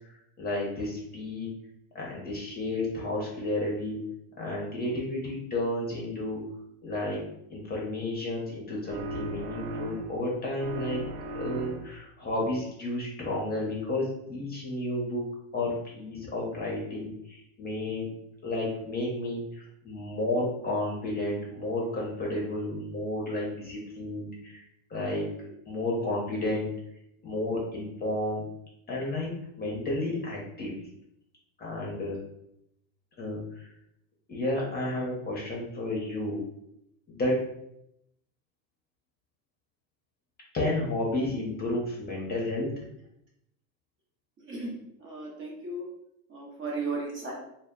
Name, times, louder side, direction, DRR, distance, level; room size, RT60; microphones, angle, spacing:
voice 1, 0.4-1.6 1.9-4.0 4.4-6.4 6.8-7.2 7.5-11.0 11.3-15.3 15.5-18.1 18.4-19.4 19.8-24.6 24.9-25.3 25.7-26.7 27.2-28.4 28.9-29.3 29.6-30.7 31.6-32.2 33.2-33.7 34.3-36.4 37.1-37.4 40.5-42.7, left 1 dB, 20° left, -3 dB, 0.7 m, -31 dB
sound 1, 8.9-10.3 10.6-12.1, right 2 dB, 80° right, 0.6 m, -37 dB
voice 2, 45.0-45.8 46.3-47.3, right 3 dB, 30° right, -3 dB, 0.6 m, -35 dB
2.1 x 2.1 x 3.6 m, 0.77 s
supercardioid pair, 115°, 45 cm